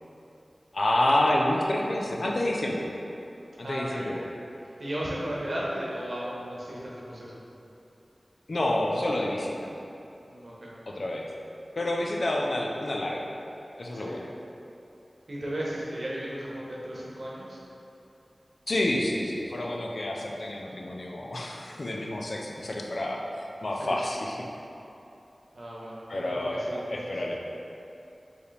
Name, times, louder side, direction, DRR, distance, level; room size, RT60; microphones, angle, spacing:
voice 1, 0.7-2.9 3.6-4.2 8.5-9.7 10.9-11.3 11.8-13.3 13.8-14.2 18.7-23.2 23.6-24.4 26.1-27.4, left 1 dB, 65° left, -1 dB, 0.5 m, -28 dB
voice 2, 3.6-4.2 4.8-7.4 10.2-10.7 14.0-14.2 15.3-17.6 23.8-24.0 25.5-27.0, equal, 70° right, -6 dB, 1.0 m, -35 dB
4.6 x 3.3 x 3.3 m, 2.8 s
wide cardioid pair, 50°, 0 cm